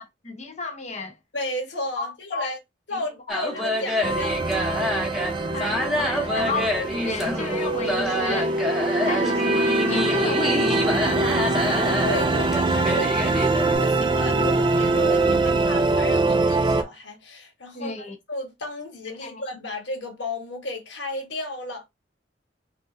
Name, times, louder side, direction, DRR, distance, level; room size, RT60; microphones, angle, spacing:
voice 1, 0.2-1.1 2.0-2.5 2.9-3.7 5.5-8.5 9.0-11.3 17.7-18.1 19.2-19.4, left 3 dB, 40° left, 1.1 m, -33 dB
voice 2, 1.3-2.6 2.9-4.5 5.7-5.8 6.3-6.6 11.5-17.9 18.3-21.8, left 2 dB, 65° left, 1.4 m, -33 dB
sound 1, 3.3-13.7, left 1 dB, ahead, 1.0 m, -27 dB
sound 2, 4.0-16.8, right 2 dB, 25° right, 0.4 m, -23 dB
3.7 x 2.8 x 3.8 m
head